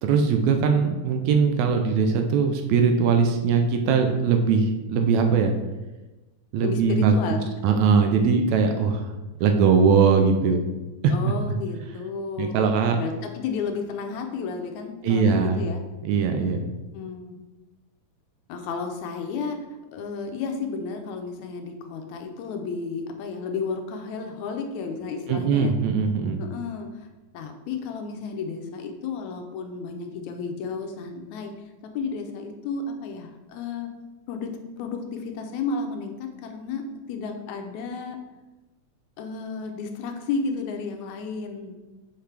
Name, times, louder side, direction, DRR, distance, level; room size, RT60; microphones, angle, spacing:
voice 1, 0.0-5.5 6.5-7.3 7.6-9.1 9.4-10.6 11.0-11.1 12.4-13.0 15.0-15.6 16.0-16.7 25.3-26.4, right 5 dB, 80° right, 5 dB, 1.8 m, -21 dB
voice 2, 6.6-7.5 11.1-12.6 13.0-15.8 16.9-17.4 18.5-19.6 19.9-25.7 26.4-27.1 27.3-31.5 31.8-33.9 34.3-38.2 39.2-41.8, left 5 dB, 80° left, 5 dB, 1.9 m, -32 dB
5.9 x 5.7 x 3.3 m, 1.1 s
omnidirectional pair, 3.4 m